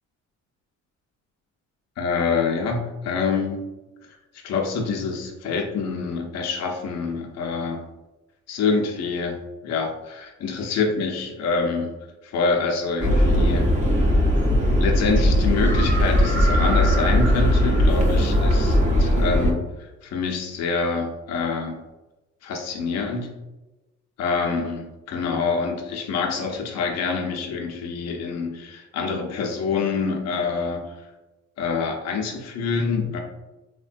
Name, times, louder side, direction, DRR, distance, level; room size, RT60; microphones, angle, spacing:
voice 1, 2.0-3.6 4.4-7.8 8.5-9.4 9.6-11.9 12.2-13.7 14.8-19.6 20.0-21.8 22.4-23.3 24.2-30.8 31.6-33.2, left 4 dB, 60° left, 1 dB, 0.6 m, -26 dB
sound 1, 13.0-19.5, equal, 25° right, 0.7 m, -19 dB
3.1 x 2.2 x 2.5 m, 1.0 s
cardioid pair, 90°, 30 cm